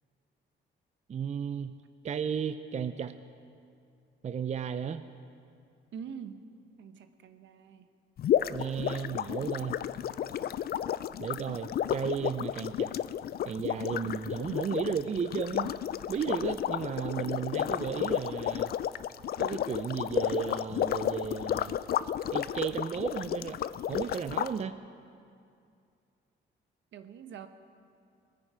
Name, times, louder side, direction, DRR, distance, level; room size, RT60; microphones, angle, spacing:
voice 1, 1.1-1.8 2.0-3.1 4.2-5.1 8.5-9.8 11.2-12.9 13.4-15.7 16.1-18.7 19.4-21.8 22.3-23.6 23.9-24.8, right 7 dB, 35° right, 11 dB, 0.5 m, -34 dB
voice 2, 5.9-6.5 6.8-7.9 26.9-27.5, right 7 dB, 70° right, 9 dB, 1.0 m, -44 dB
sound 1, 8.2-24.5, left 10 dB, 50° left, 0.4 m, -32 dB
19.5 x 9.8 x 5.0 m, 2.4 s
cardioid pair, 90°, 20 cm